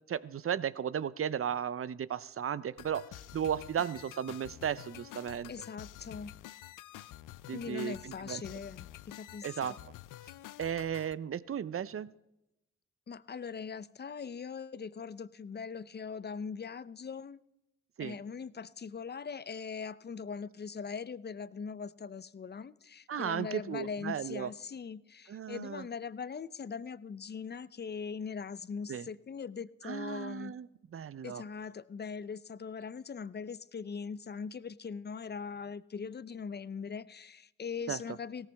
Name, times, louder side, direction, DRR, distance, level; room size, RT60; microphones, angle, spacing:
voice 1, 0.1-3.1 3.3-5.5 7.5-8.4 9.4-9.7 10.6-12.1 18.0-18.1 23.1-24.5 25.3-25.8 28.9-29.0 29.8-30.7 30.9-31.4 37.9-38.0, right 8 dB, 45° right, 0.6 m, -35 dB
sound 1, 2.8-11.1, left 14 dB, 75° left, 0.5 m, -49 dB
voice 2, 5.5-6.3 7.5-9.8 13.1-17.4 18.0-30.6 31.2-38.5, left 6 dB, 30° left, 0.6 m, -41 dB
17.0 x 14.5 x 3.5 m
supercardioid pair, 50°, 32 cm